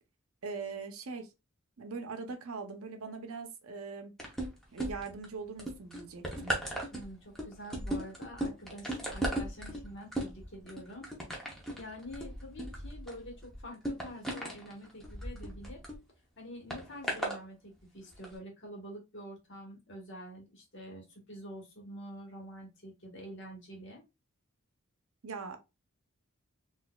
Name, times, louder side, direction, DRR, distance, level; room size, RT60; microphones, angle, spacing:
voice 1, 0.4-1.3 1.8-4.1 4.7-6.5 25.2-25.6, right 4 dB, 75° right, 0.6 m, -41 dB
sound 1, 4.2-5.2 5.6-16.0 16.7-17.4 18.1-18.3, right 1 dB, ahead, 0.7 m, -37 dB
voice 2, 6.9-11.1 11.4-15.8 16.4-24.0, equal, 55° left, 1.2 m, -47 dB
3.9 x 2.5 x 2.3 m
head